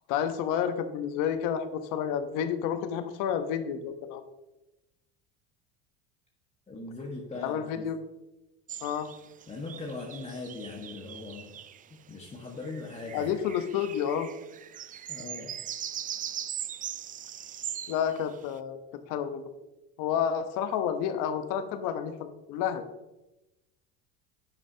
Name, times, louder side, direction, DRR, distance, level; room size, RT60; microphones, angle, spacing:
voice 1, 0.1-4.2 7.4-8.0 8.8-9.1 13.1-14.3 17.9-18.8 19.1-19.4 20.0-22.8, left 8 dB, 70° left, 9 dB, 1.0 m, -30 dB
voice 2, 6.7-7.8 9.5-11.6 12.1-13.3 15.1-15.5, left 3 dB, 20° left, -2 dB, 1.4 m, -40 dB
sound 1, 8.7-11.9 12.6-18.6, right 10 dB, 25° right, 0.3 m, -40 dB
10.0 x 7.3 x 2.8 m, 0.99 s
supercardioid pair, 95°, 33 cm